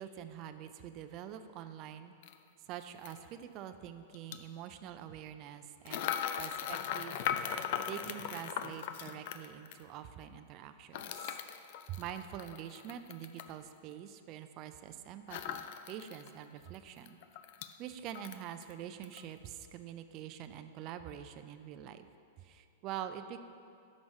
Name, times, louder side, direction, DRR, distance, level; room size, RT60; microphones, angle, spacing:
voice 1, 0.0-2.1 2.7-7.2 7.9-11.4 11.9-17.2 17.8-22.1 22.4-23.4, right 10 dB, 35° right, 9 dB, 0.4 m, -45 dB
sound 1, 2.2-2.3 3.0-3.2 4.1-4.4 5.8-9.8 10.9-13.5 15.3-16.3 16.7-16.8 17.0-17.7 18.1-18.7 19.0-19.2, left 9 dB, 50° left, 0.4 m, -39 dB
6.1 x 5.3 x 6.3 m, 2.4 s
supercardioid pair, 155°, 0 cm